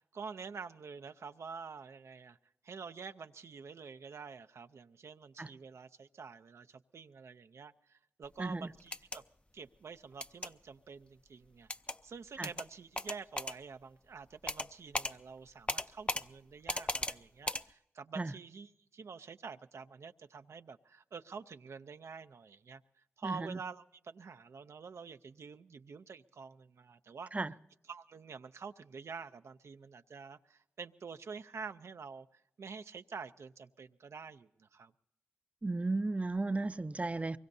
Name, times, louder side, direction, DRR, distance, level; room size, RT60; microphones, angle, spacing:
voice 1, 0.0-2.4 2.6-9.2 9.5-11.7 12.0-22.8 23.2-27.3 27.9-34.9, right 5 dB, 80° right, 0.5 m, -48 dB
voice 2, 8.4-8.7 12.4-12.5 18.2-18.3 23.2-23.6 27.3-27.5 35.6-37.4, right 2 dB, 30° right, 0.5 m, -34 dB
sound 1, 8.8-9.2 10.2-10.5 11.7-12.0 12.4-12.7 13.0-13.6 14.5-14.7 14.9-15.1 15.7-16.2 16.7-17.2 17.5-17.6, left 2 dB, 25° left, 0.5 m, -36 dB
23.5 x 22.5 x 2.7 m
cardioid pair, 45°, 5 cm